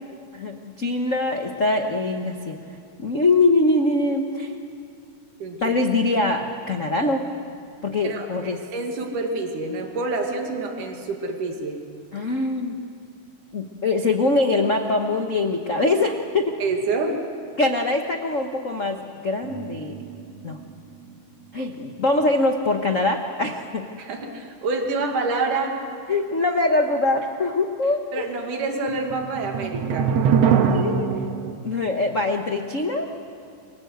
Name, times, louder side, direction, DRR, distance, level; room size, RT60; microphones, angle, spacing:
voice 1, 0.3-2.6 3.0-4.5 5.6-7.2 7.8-8.6 12.1-12.8 13.5-16.6 17.6-19.9 20.4-20.6 21.5-23.9 26.1-28.3 30.7-31.1 31.6-33.1, left 2 dB, 70° left, 4 dB, 0.7 m, -23 dB
voice 2, 5.4-5.8 8.0-11.8 16.6-17.2 24.0-25.8 28.1-30.1, right 3 dB, 90° right, 2 dB, 3.7 m, -27 dB
sound 1, 19.4-21.1 21.5-21.6 28.9-31.5, right 7 dB, 60° right, 2.2 m, -23 dB
28.5 x 24.5 x 8.1 m, 2.5 s
omnidirectional pair, 3.5 m